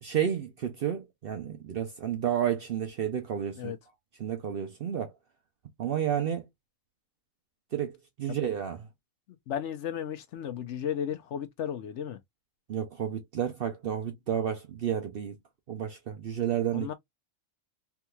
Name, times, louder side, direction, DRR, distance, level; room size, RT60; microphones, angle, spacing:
voice 1, 0.0-3.7 4.2-5.1 5.8-6.4 7.7-8.9 12.7-15.4 15.7-16.9, right 9 dB, 60° right, 0.6 m, -31 dB
voice 2, 9.5-12.2 16.7-16.9, left 9 dB, 65° left, 0.9 m, -34 dB
3.5 x 2.9 x 2.2 m
omnidirectional pair, 1.4 m